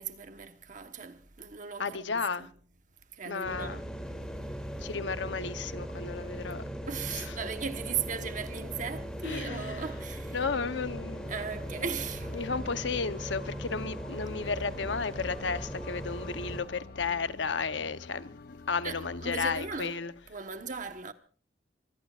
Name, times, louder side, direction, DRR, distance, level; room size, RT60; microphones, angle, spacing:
voice 1, 0.0-2.5 3.1-3.8 6.9-10.4 11.3-12.3 18.8-20.0 20.3-21.1, right 6 dB, 45° right, 1.2 m, -37 dB
voice 2, 1.8-2.5 3.3-3.8 4.8-6.6 7.1-7.2 9.2-9.8 10.3-11.4 12.3-18.4 18.7-20.1, left 5 dB, 75° left, 0.9 m, -33 dB
sound 1, 3.4-16.6, equal, 5° left, 2.7 m, -39 dB
sound 2, 10.9-19.8, left 3 dB, 55° left, 0.7 m, -47 dB
25.0 x 20.5 x 2.4 m
head